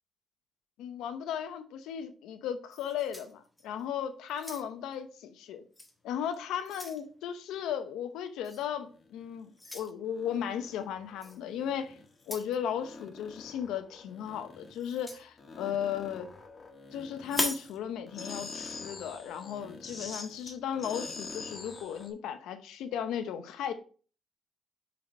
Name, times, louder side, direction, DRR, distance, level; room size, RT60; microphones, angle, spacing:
voice 1, 0.8-5.6 6.0-12.0 12.3-16.3 16.9-23.7, left 9 dB, 90° left, 0.9 m, -36 dB
sound 1, 2.7-3.8 4.3-4.9 5.7-5.9 6.3-7.0 8.4-8.7 9.6-9.9 11.2-11.4 12.2-12.6 14.8-15.2 17.2-17.7, left 1 dB, 10° left, 1.5 m, -38 dB
sound 2, 9.0-9.4 10.1-12.4 12.7-15.1 15.4-17.8 18.1-22.1, left 4 dB, 40° left, 1.5 m, -45 dB
5.7 x 5.1 x 4.5 m
cardioid pair, 90°, 0 cm